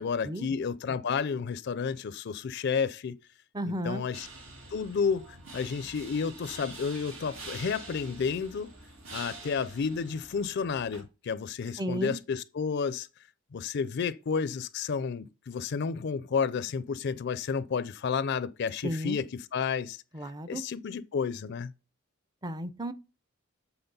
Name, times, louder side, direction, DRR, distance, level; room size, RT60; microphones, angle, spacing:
voice 1, 0.0-3.2 3.7-4.3 4.7-8.7 9.1-13.1 13.5-20.0 20.5-21.7, left 6 dB, 55° left, 0.4 m, -31 dB
voice 2, 3.5-4.0 11.8-12.2 18.8-19.2 20.1-20.6 22.4-22.9, equal, 20° right, 0.5 m, -33 dB
sound 1, 4.1-11.0, right 3 dB, 85° right, 2.3 m, -46 dB
7.9 x 4.1 x 5.4 m
head